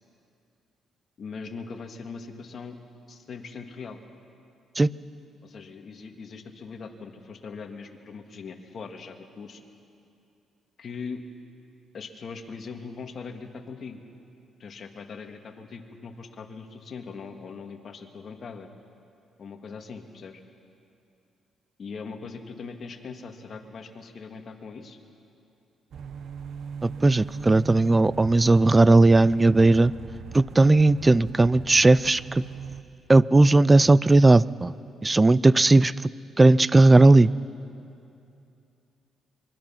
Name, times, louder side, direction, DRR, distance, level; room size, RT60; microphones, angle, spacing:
voice 1, 1.2-2.8 3.1-4.0 5.4-9.6 10.8-11.2 11.9-14.0 14.6-18.7 19.4-20.4 21.8-25.0, left 5 dB, 50° left, 4 dB, 2.0 m, -40 dB
sound 1, 25.9-32.8, right 6 dB, 65° right, 0.9 m, -40 dB
voice 2, 26.8-29.9 30.3-32.5 33.1-34.7 35.0-35.9 36.4-37.3, right 2 dB, 20° right, 20 dB, 0.4 m, -17 dB
24.5 x 23.0 x 5.9 m, 2.6 s
cardioid pair, 90°, 0 cm